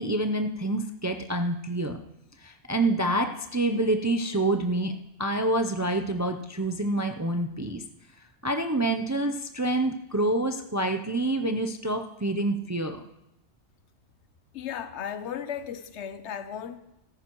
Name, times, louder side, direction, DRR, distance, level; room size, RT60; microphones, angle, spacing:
voice 1, 0.0-2.0 2.4-4.9 5.2-7.8 8.4-13.0, right 1 dB, 25° right, 0.3 m, -27 dB
voice 2, 14.5-16.8, left 8 dB, 80° left, 1.0 m, -35 dB
15.5 x 14.0 x 3.0 m
omnidirectional pair, 1.1 m